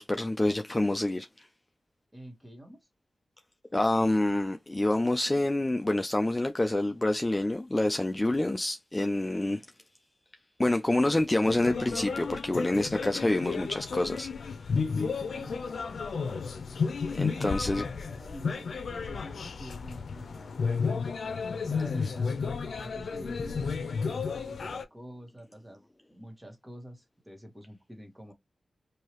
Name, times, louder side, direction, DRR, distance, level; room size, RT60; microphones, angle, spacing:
voice 1, 0.0-1.5 3.7-9.6 10.6-14.3 17.1-17.8, left 1 dB, 15° left, 0.4 m, -27 dB
voice 2, 2.1-2.9 14.8-16.3 17.3-17.8 18.1-21.2 21.7-28.3, equal, 15° right, 1.5 m, -47 dB
sound 1, 11.5-24.8, left 5 dB, 75° left, 0.6 m, -32 dB
4.7 x 2.7 x 3.0 m
wide cardioid pair, 120°, 0 cm